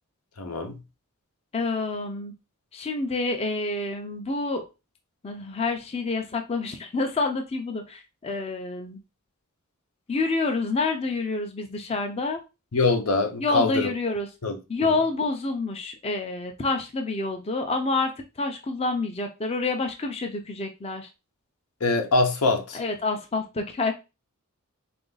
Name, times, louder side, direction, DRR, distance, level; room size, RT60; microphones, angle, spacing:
voice 1, 0.4-0.8 12.7-13.9 14.4-14.6 21.8-22.8, left 3 dB, 85° left, 0.8 m, -23 dB
voice 2, 1.5-2.3 2.7-4.7 5.2-9.0 10.1-12.4 13.4-14.3 14.7-18.1 18.4-21.1 22.7-23.9, left 3 dB, 25° left, 0.5 m, -28 dB
3.8 x 2.5 x 3.9 m
head